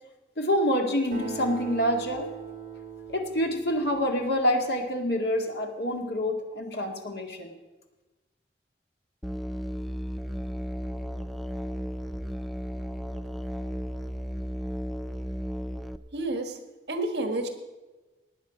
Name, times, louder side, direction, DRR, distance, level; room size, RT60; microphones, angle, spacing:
voice 1, 0.4-2.3 3.1-7.5, equal, 65° left, 3 dB, 2.0 m, -27 dB
Acoustic guitar, 1.1-4.9, right 6 dB, 45° right, 2.6 m, -41 dB
Musical instrument, 9.2-16.0, equal, ahead, 0.3 m, -34 dB
voice 2, 16.1-16.6 16.9-17.5, right 2 dB, 70° right, 6 dB, 1.5 m, -29 dB
19.0 x 9.0 x 5.0 m, 1.2 s
head